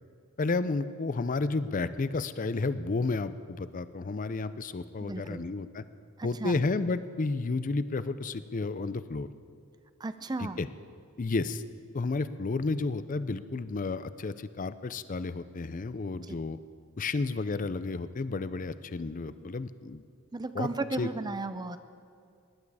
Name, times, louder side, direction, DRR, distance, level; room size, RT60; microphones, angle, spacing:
voice 1, 0.4-5.8 6.2-9.3 10.4-10.7 11.2-11.6 11.9-16.6 17.0-20.0 20.6-20.7 21.0-21.1, left 3 dB, 40° left, 14 dB, 0.5 m, -31 dB
voice 2, 5.0-5.5 6.2-6.6 10.0-10.6 16.2-16.4 20.3-21.8, right 2 dB, 20° right, 11 dB, 0.5 m, -35 dB
18.5 x 11.0 x 4.8 m, 2.4 s
head